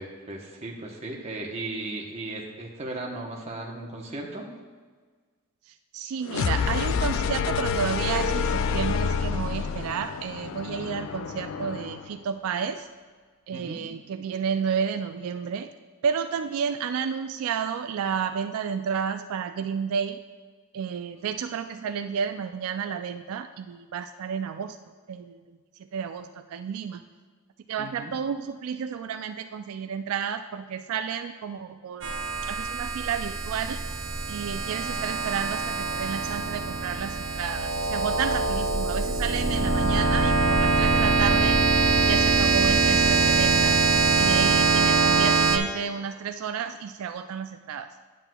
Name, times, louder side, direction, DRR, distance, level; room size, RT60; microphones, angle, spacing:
voice 1, 0.0-4.5 13.5-13.8 27.8-28.1, right 2 dB, 30° right, -1 dB, 0.9 m, -36 dB
voice 2, 5.9-12.9 13.5-15.7 16.0-20.2 20.7-24.8 25.1-25.4 25.9-27.0 27.7-33.8 34.3-41.6 42.1-43.8 44.1-47.9, right 7 dB, 80° right, 9 dB, 0.3 m, -31 dB
sound 1, 6.3-12.1, left 5 dB, 60° left, 0.3 m, -28 dB
sound 2, 32.0-45.6, right 4 dB, 60° right, 0.7 m, -23 dB
9.8 x 7.6 x 2.3 m, 1.5 s
head